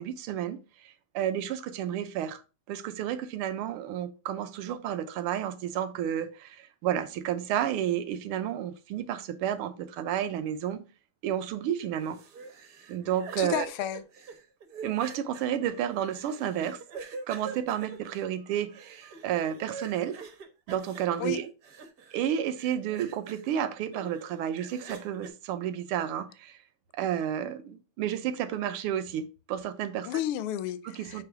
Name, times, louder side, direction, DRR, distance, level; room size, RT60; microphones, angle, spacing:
voice 1, 0.0-2.4 2.7-10.8 11.2-12.2 12.9-13.7 14.8-16.8 17.3-20.2 20.7-21.5 22.1-26.6 26.9-30.1 30.8-31.2, right 10 dB, 80° right, 1.5 m, -31 dB
sound 1, 11.8-22.3 22.6-23.5 23.9-25.3, right 5 dB, 55° right, 1.2 m, -45 dB
voice 2, 13.4-14.0 21.2-21.4 30.1-31.2, left 12 dB, 80° left, 1.4 m, -32 dB
6.9 x 2.9 x 4.7 m
omnidirectional pair, 2.4 m